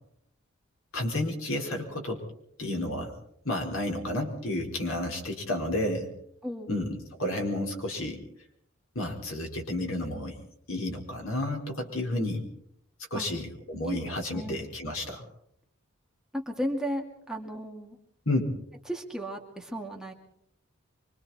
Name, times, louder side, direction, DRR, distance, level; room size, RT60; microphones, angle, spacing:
voice 1, 0.9-2.2 2.6-3.1 3.4-6.1 6.7-8.2 8.9-10.4 10.7-12.4 13.1-15.2 18.3-18.5, left 1 dB, 75° left, 2 dB, 4.7 m, -31 dB
voice 2, 6.4-6.7 13.1-13.3 13.9-14.0 14.3-14.6 16.3-18.0 18.9-20.1, equal, 5° right, 0 dB, 2.4 m, -34 dB
26.0 x 24.5 x 4.4 m, 0.70 s
head